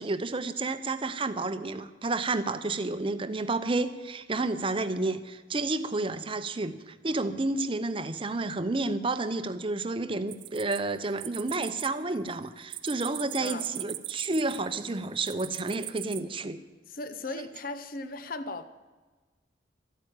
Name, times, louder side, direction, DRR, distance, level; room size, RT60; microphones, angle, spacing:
voice 1, 0.0-16.6, right 2 dB, 30° right, 0.7 m, -30 dB
sound 1, 10.3-11.9 12.2-14.8 15.2-16.2, right 16 dB, 75° right, 0.6 m, -39 dB
voice 2, 16.9-18.7, left 2 dB, 50° left, 0.7 m, -37 dB
14.0 x 9.1 x 8.9 m
head